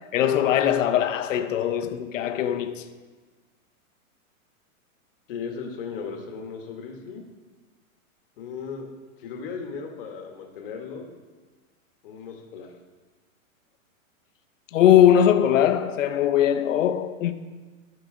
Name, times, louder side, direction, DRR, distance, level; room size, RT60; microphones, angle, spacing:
voice 1, 0.0-2.8 14.7-17.3, left 10 dB, 60° left, 0.8 m, -20 dB
voice 2, 5.3-7.2 8.4-8.9 9.2-11.1 12.0-12.7, left 5 dB, 40° left, 1.2 m, -36 dB
12.0 x 5.7 x 3.7 m
supercardioid pair, 170°, 42 cm